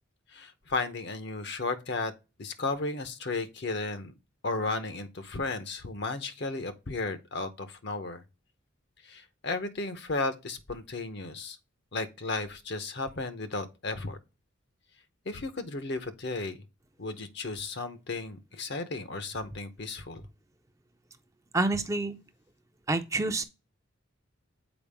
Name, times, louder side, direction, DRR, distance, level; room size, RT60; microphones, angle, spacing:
voice 1, 0.3-2.1 2.4-4.1 4.4-8.2 9.0-11.6 11.9-14.2 15.2-16.6 17.0-20.2, left 3 dB, 55° left, 0.9 m, -34 dB
voice 2, 21.5-22.2 22.9-23.4, right 2 dB, 15° right, 0.5 m, -27 dB
7.0 x 4.6 x 3.5 m
head